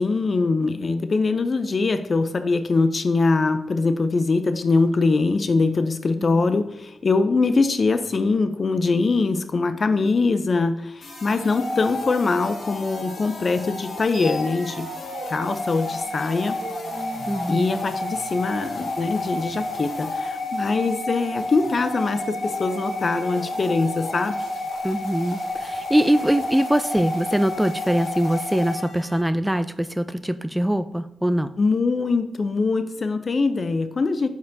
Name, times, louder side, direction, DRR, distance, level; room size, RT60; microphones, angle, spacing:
voice 1, 0.0-14.9 15.3-16.6 17.5-24.4 31.6-34.3, left 3 dB, 50° left, 10 dB, 0.5 m, -22 dB
sound 1, 6.8-7.4 11.1-12.5 13.3-15.2 15.8-17.4 18.3-19.6 20.2-20.3 20.5-21.8 22.4-22.5 22.7-23.7, right 1 dB, 70° right, 2.3 m, -43 dB
sound 2, 11.0-29.2, left 2 dB, 75° left, 1.7 m, -31 dB
voice 2, 17.3-17.8 24.8-31.5, equal, 10° right, 11 dB, 0.3 m, -23 dB
8.9 x 5.3 x 2.7 m, 0.84 s
supercardioid pair, 45°, 0 cm